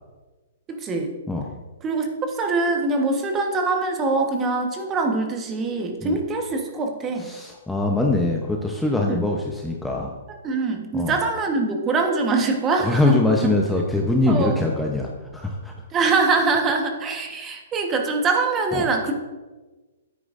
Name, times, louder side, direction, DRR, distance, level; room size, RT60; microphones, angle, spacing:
voice 1, 0.7-1.1 1.8-7.3 9.1-9.3 10.4-13.5 14.3-14.6 15.9-19.1, right 3 dB, 20° right, 3 dB, 1.3 m, -23 dB
voice 2, 7.2-10.1 10.9-11.1 12.8-15.7 18.7-18.8, left 2 dB, 5° left, 0 dB, 0.8 m, -23 dB
9.4 x 9.3 x 2.6 m, 1.2 s
hypercardioid pair, 135°, 0 cm